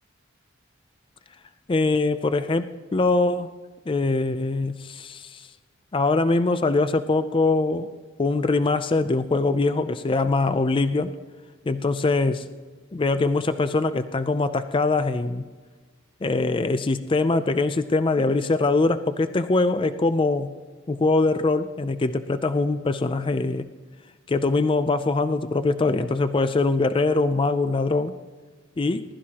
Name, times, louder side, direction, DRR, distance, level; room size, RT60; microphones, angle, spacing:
voice 1, 1.7-3.5 3.9-5.5 5.9-7.9 8.2-11.1 11.7-12.5 12.9-15.5 16.2-20.5 20.9-23.7 24.3-28.1 28.8-29.0, left 3 dB, 25° left, 11 dB, 0.4 m, -23 dB
20.0 x 12.5 x 2.9 m, 1.4 s
head